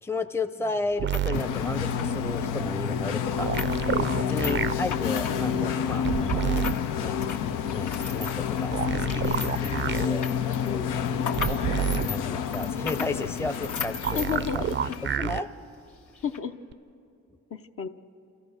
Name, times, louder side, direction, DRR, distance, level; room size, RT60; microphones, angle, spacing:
voice 1, 0.0-3.5 4.3-6.6 7.0-7.1 7.5-10.2 10.9-14.6 15.0-15.5, left 3 dB, 10° left, 8 dB, 0.7 m, -34 dB
sound 1, 0.9-6.8 7.1-15.1 15.4-15.5 16.1-16.4, left 5 dB, 70° left, 1.9 m, -38 dB
sound 2, 1.0-1.4 3.4-4.7 6.0-6.7 8.7-10.1 11.4-12.1 14.0-15.4 16.7-16.8, right 9 dB, 40° right, 0.5 m, -28 dB
sound 3, 1.3-15.2, left 7 dB, 90° left, 0.7 m, -29 dB
voice 2, 10.6-11.0 14.1-15.0 16.2-16.6 17.5-17.9, left 7 dB, 50° left, 7 dB, 0.8 m, -32 dB
28.0 x 14.5 x 6.5 m, 2.5 s
cardioid pair, 90°, 30 cm